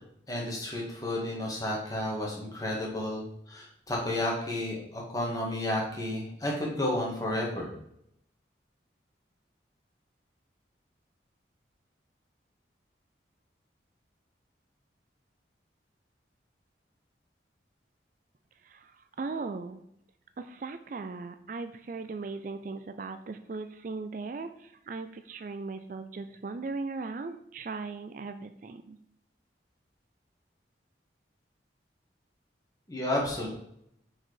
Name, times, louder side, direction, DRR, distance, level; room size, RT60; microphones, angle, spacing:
voice 1, 0.3-7.7 32.9-33.5, left 1 dB, 20° left, -3 dB, 1.9 m, -32 dB
voice 2, 19.2-19.8 20.4-29.0, right 4 dB, 45° right, 9 dB, 0.4 m, -38 dB
6.1 x 4.8 x 4.7 m, 0.73 s
head